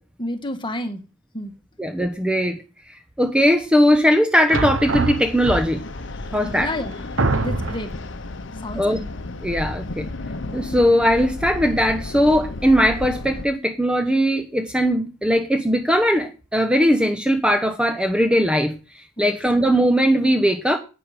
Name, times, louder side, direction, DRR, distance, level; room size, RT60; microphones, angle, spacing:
voice 1, 0.2-1.0 1.3-1.5 6.1-7.0 7.4-7.9 8.6-9.0 19.2-19.4, left 1 dB, 25° left, 7 dB, 1.6 m, -30 dB
voice 2, 1.8-2.6 3.2-5.8 6.3-6.7 8.8-9.0 9.4-10.0 10.5-18.8 19.2-20.8, equal, 5° right, 5 dB, 1.0 m, -19 dB
sound 1, 4.5-6.0 6.6-6.7 7.2-8.0, right 3 dB, 75° right, 1.0 m, -24 dB
sound 2, 4.9-13.5, left 2 dB, 60° left, 0.9 m, -33 dB
11.0 x 9.0 x 5.1 m, 0.32 s
head